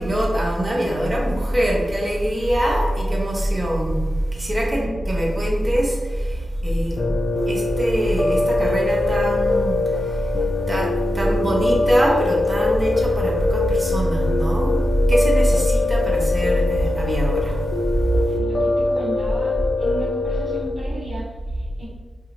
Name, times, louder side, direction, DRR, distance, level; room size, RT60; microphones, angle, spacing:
voice 1, 0.0-7.1 7.5-18.4, equal, 30° right, -2 dB, 0.8 m, -22 dB
Piano, 7.0-20.7, left 2 dB, 65° left, 0.4 m, -23 dB
voice 2, 18.2-21.8, left 1 dB, 75° right, -8 dB, 1.2 m, -35 dB
2.8 x 2.3 x 3.0 m, 1.3 s
cardioid pair, 45°, 0 cm